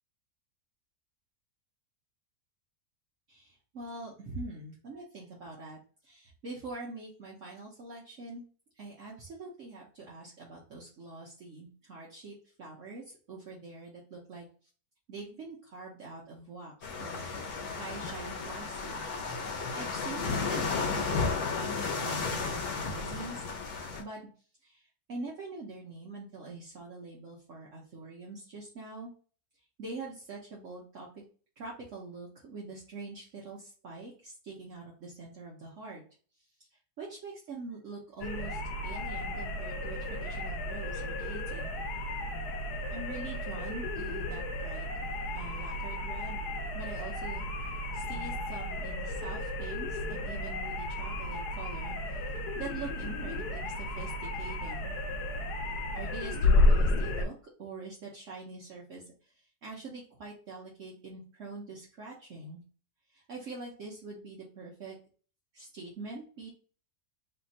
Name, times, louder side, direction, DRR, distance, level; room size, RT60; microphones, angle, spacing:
voice 1, 3.3-8.4 8.8-14.5 15.1-16.7 17.0-17.3 17.7-19.0 19.5-23.4 24.0-24.2 24.6-29.1 29.8-31.2 31.6-36.0 37.0-41.7 42.9-45.1 45.3-46.4 46.7-47.5 47.9-52.0 52.6-54.9 55.9-57.3 57.6-59.0 59.6-62.6 63.1-65.0 65.5-66.5, right 3 dB, 60° right, -4 dB, 1.2 m, -44 dB
sound 1, 16.8-24.0, left 4 dB, 70° left, 1.4 m, -33 dB
sound 2, 38.2-57.3, left 2 dB, 90° left, 1.2 m, -32 dB
3.4 x 2.4 x 4.1 m, 0.40 s
omnidirectional pair, 1.6 m